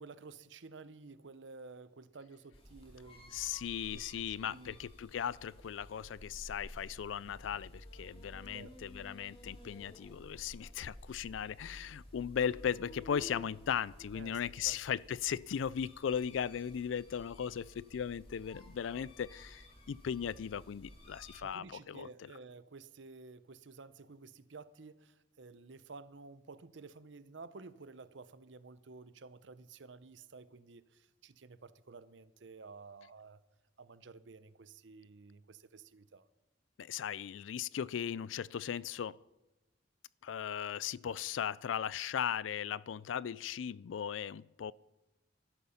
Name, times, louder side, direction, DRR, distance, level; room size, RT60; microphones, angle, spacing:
voice 1, 0.0-3.4 3.9-4.8 8.5-8.8 14.1-14.8 21.4-33.4 33.8-36.3, right 4 dB, 70° right, 0.7 m, -52 dB
sound 1, 2.5-21.4, left 1 dB, 30° left, 2.4 m, -53 dB
voice 2, 3.3-22.1 36.8-39.2 40.2-44.7, left 8 dB, 85° left, 0.4 m, -37 dB
15.0 x 12.5 x 5.7 m
head